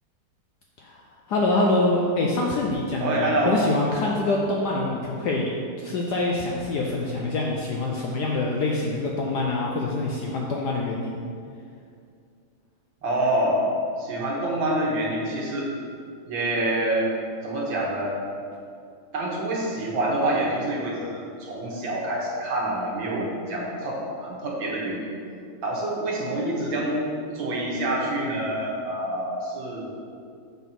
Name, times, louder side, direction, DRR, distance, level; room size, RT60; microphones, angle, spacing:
voice 1, 1.3-5.5 5.8-11.2, left 2 dB, 70° left, -1 dB, 1.0 m, -25 dB
voice 2, 3.0-3.6 13.0-13.6 14.0-15.7 16.3-17.1 17.4-18.2 19.1-25.1 25.6-27.0 27.3-29.9, right 1 dB, 65° right, -3 dB, 1.9 m, -26 dB
7.1 x 4.1 x 5.8 m, 2.4 s
omnidirectional pair, 2.3 m